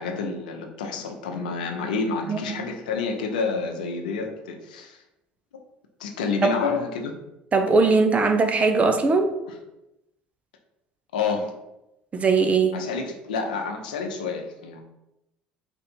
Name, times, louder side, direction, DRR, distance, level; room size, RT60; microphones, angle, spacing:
voice 1, 0.0-5.0 6.0-7.1 11.1-11.5 12.7-14.8, left 4 dB, 85° left, 3 dB, 0.7 m, -29 dB
voice 2, 2.3-2.6 6.4-6.6 7.5-9.3 12.1-12.8, right 4 dB, 30° right, 8 dB, 0.6 m, -20 dB
4.5 x 2.6 x 4.3 m, 0.90 s
hypercardioid pair, 65°, 4 cm